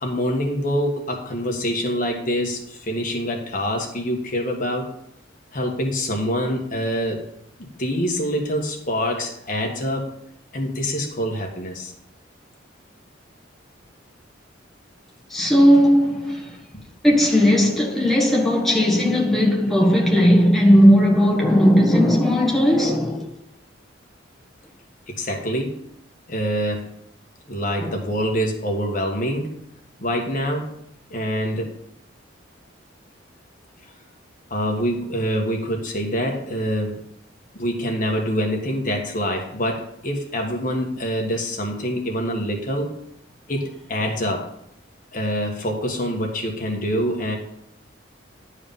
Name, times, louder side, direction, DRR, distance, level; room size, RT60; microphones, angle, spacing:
voice 1, 0.0-4.9 5.5-7.2 7.6-10.1 10.5-11.9 25.1-25.7 26.3-26.9 27.5-29.5 30.0-30.7 31.1-31.8 34.5-37.0 37.5-42.9 43.5-44.5 45.1-47.4, equal, 40° left, 1.5 m, -25 dB
voice 2, 15.3-16.6 17.0-23.3 27.8-27.9, equal, ahead, 1.6 m, -17 dB
10.5 x 4.9 x 5.4 m
head